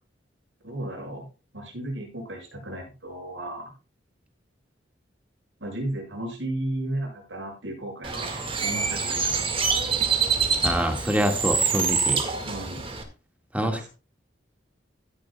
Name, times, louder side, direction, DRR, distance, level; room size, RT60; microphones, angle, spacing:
voice 1, 0.6-1.3 1.5-3.7 5.6-9.4 12.4-12.9 13.6-13.9, right 1 dB, 85° right, 0 dB, 7.0 m, -34 dB
Bird, 8.0-13.0, right 5 dB, 30° right, 1.9 m, -26 dB
voice 2, 10.6-12.3 13.5-13.9, equal, 10° right, 4 dB, 1.8 m, -25 dB
15.5 x 11.0 x 2.3 m, 0.32 s
head